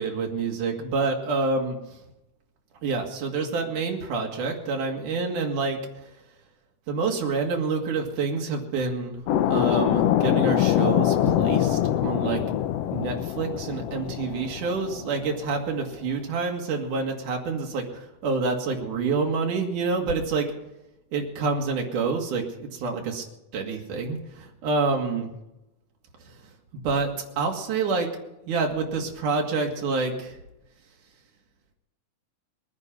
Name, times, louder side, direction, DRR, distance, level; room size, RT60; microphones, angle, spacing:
voice 1, 0.0-1.8 2.8-5.8 6.9-9.2 9.4-12.4 12.9-20.5 21.1-23.2 23.5-25.4 26.8-27.1 27.4-28.1 28.4-30.4, right 4 dB, 85° right, 1 dB, 3.5 m, -27 dB
sound 1, 9.3-15.6, left 11 dB, 75° left, 1.5 m, -24 dB
22.0 x 9.6 x 5.5 m, 0.91 s
omnidirectional pair, 3.5 m